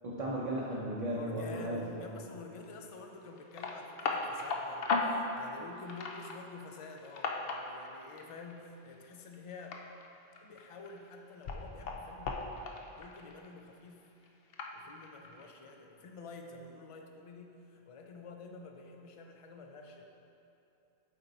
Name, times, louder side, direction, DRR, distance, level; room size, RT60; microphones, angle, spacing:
voice 1, 0.0-2.0, right 1 dB, 40° right, -5 dB, 0.7 m, -35 dB
voice 2, 1.1-9.8 10.4-12.4 13.0-14.0 14.7-20.0, left 3 dB, 45° left, 3 dB, 0.4 m, -49 dB
sound 1, 2.6-2.9 3.2-9.0 9.3-11.2 11.4-13.6 14.2-15.5, left 3 dB, 65° left, 0.8 m, -37 dB
7.7 x 4.4 x 4.0 m, 2.8 s
omnidirectional pair, 1.1 m